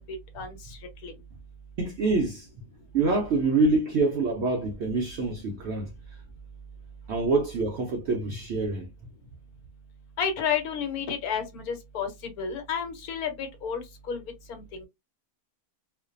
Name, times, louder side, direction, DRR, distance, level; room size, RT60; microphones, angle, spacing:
voice 1, 0.1-1.1 10.2-14.2 14.5-14.9, left 7 dB, 70° left, 1.1 m, -32 dB
voice 2, 1.8-2.5 2.9-6.2 7.1-8.9, right 3 dB, 75° right, 0.6 m, -26 dB
2.5 x 2.2 x 2.4 m
omnidirectional pair, 1.7 m